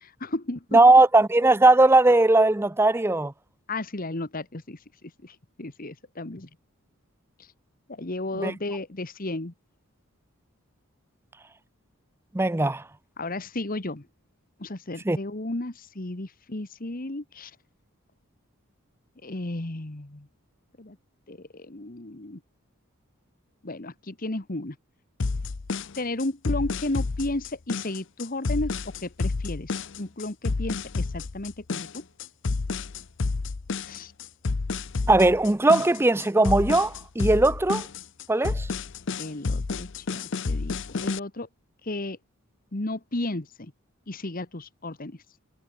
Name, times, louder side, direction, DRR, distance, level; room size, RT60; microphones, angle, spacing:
voice 1, 0.2-0.8 3.7-6.5 7.4-7.5 7.9-9.5 13.2-14.1 14.6-17.5 19.2-20.3 20.8-21.0 21.3-22.4 23.6-24.8 26.0-32.0 33.9-34.1 39.2-41.5 41.8-42.2 42.7-43.7 44.1-45.2, left 2 dB, 40° left, 1.4 m, -33 dB
voice 2, 0.7-3.3 8.4-8.5 12.3-12.8 15.1-15.2 35.1-37.9 38.3-38.7, right 2 dB, 10° right, 0.5 m, -19 dB
sound 1, 25.2-41.2, left 3 dB, 60° left, 0.7 m, -30 dB
head